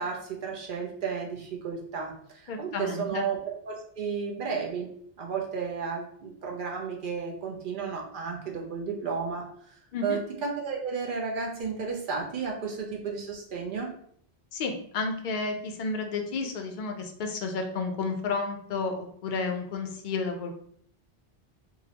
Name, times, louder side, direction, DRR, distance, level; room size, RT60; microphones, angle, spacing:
voice 1, 0.0-4.9 5.2-9.5 10.0-13.9, right 5 dB, 60° right, 0 dB, 0.7 m, -33 dB
voice 2, 2.5-3.3 9.9-10.2 14.5-20.5, left 4 dB, 60° left, 4 dB, 0.6 m, -31 dB
3.7 x 2.0 x 2.8 m, 0.63 s
omnidirectional pair, 1.1 m